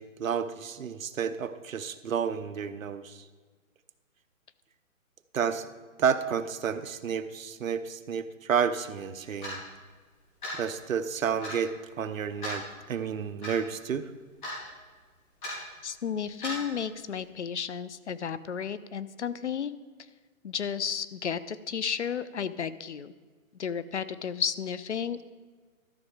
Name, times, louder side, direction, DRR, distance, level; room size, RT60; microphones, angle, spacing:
voice 1, 0.0-3.2 5.3-5.7 6.0-9.6 10.5-14.1, right 7 dB, 70° right, 11 dB, 0.7 m, -31 dB
Clock, 9.4-9.6 10.4-10.6 11.4-11.6 12.4-12.6 13.4-13.5 14.4-14.6 15.4-15.6 16.4-16.6, equal, 35° left, 3.6 m, -35 dB
voice 2, 15.8-19.7 20.4-23.1 23.5-25.2, left 7 dB, 55° left, 15 dB, 0.5 m, -33 dB
13.0 x 6.2 x 4.9 m, 1.4 s
hypercardioid pair, 175°, 42 cm